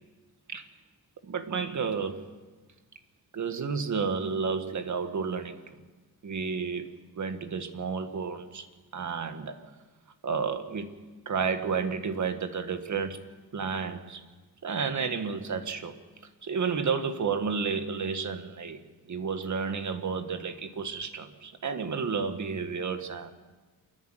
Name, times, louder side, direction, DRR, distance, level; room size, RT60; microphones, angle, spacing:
voice 1, 1.2-2.2 3.3-5.8 6.2-8.7 8.9-9.6 10.2-10.9 11.2-13.2 13.5-14.2 14.6-16.0 16.4-18.8 19.1-23.3, right 5 dB, 55° right, 8 dB, 1.8 m, -31 dB
28.0 x 10.5 x 9.2 m, 1.3 s
cardioid pair, 100°, 36 cm